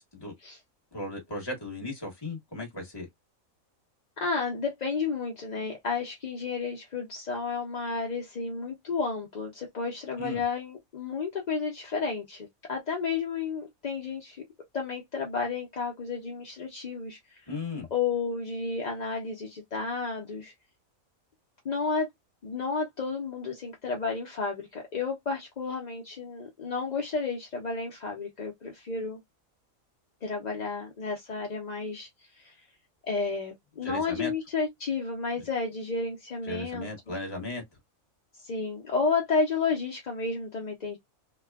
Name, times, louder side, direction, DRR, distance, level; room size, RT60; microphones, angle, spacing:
voice 1, 0.9-3.1 10.2-10.4 17.5-17.9 33.8-34.3 36.4-37.6, left 2 dB, 20° left, 1.1 m, -36 dB
voice 2, 4.2-14.4 14.7-17.4 17.9-20.5 21.6-22.1 22.4-29.2 30.2-32.1 32.4-32.5 33.1-37.1 38.4-41.0, left 4 dB, 50° left, 0.5 m, -32 dB
3.2 x 2.1 x 2.2 m
omnidirectional pair, 1.5 m